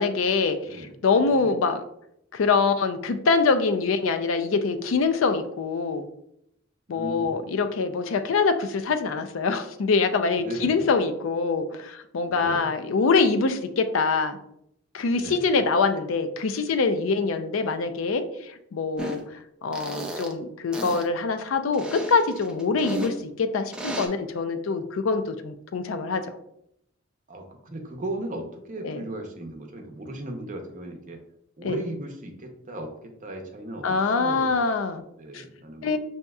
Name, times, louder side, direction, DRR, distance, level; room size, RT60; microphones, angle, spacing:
voice 1, 0.0-1.8 2.3-6.1 6.9-14.4 14.9-19.2 19.6-26.2 28.8-29.0 31.6-31.8 33.8-35.0 35.3-35.4 35.8-36.0, left 4 dB, 85° left, 8 dB, 0.4 m, -24 dB
voice 2, 0.6-0.9 1.3-1.5 6.9-7.3 10.4-10.9 12.2-12.7 15.1-15.5 27.3-31.2 31.6-34.5 35.2-36.0, right 1 dB, 40° right, 3 dB, 0.7 m, -37 dB
sound 1, 19.0-19.2 19.7-20.3 20.7-21.0 21.7-23.1 23.7-24.1, right 1 dB, 5° right, 0.4 m, -33 dB
6.2 x 2.8 x 2.3 m, 0.75 s
head